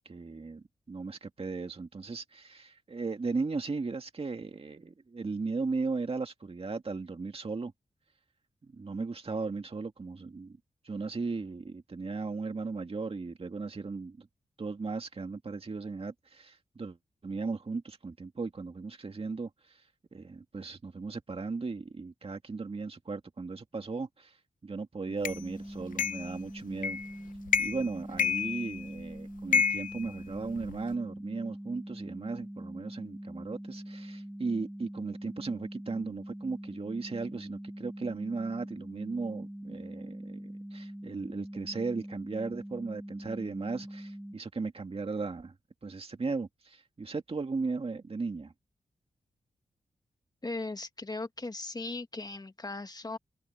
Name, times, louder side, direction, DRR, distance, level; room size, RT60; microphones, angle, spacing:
voice 1, 0.0-7.7 8.8-10.6 10.8-14.3 14.6-17.0 17.2-19.8 20.1-24.4 24.6-27.0 27.6-45.5 45.8-48.5, right 4 dB, 45° right, 2.1 m, -36 dB
sound 1, 25.1-44.4, equal, 5° right, 4.8 m, -43 dB
sound 2, 25.3-25.4 26.0-26.3 26.8-27.1 27.5-27.9 28.2-29.0 29.5-30.8, left 6 dB, 85° left, 0.7 m, -29 dB
voice 2, 50.4-53.2, left 2 dB, 30° left, 1.6 m, -38 dB
cardioid pair, 55°, 13 cm